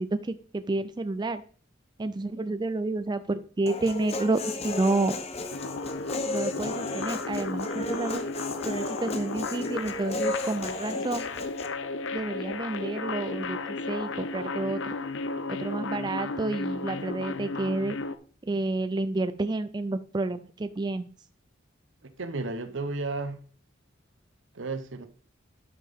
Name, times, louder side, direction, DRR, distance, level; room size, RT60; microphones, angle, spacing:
voice 1, 0.0-1.4 2.0-5.1 6.3-8.2 8.6-11.2 12.1-14.9 15.5-18.0 18.5-21.1, right 2 dB, 20° right, 0.4 m, -30 dB
Human voice, 3.7-11.7, left 2 dB, 35° left, 0.8 m, -34 dB
sound 1, 5.5-18.2, left 3 dB, 75° left, 0.6 m, -34 dB
voice 2, 22.2-23.4 24.5-25.1, right 3 dB, 75° right, 0.9 m, -33 dB
11.5 x 5.5 x 3.5 m
head